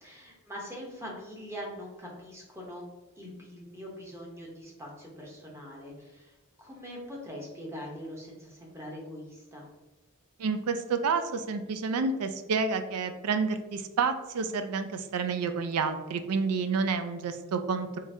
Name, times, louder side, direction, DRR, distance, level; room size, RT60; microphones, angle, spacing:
voice 1, 0.0-2.9 3.2-9.7, equal, 10° right, -3 dB, 0.8 m, -43 dB
voice 2, 10.4-18.0, right 5 dB, 90° right, 9 dB, 0.4 m, -29 dB
3.7 x 3.2 x 2.6 m, 1.1 s
head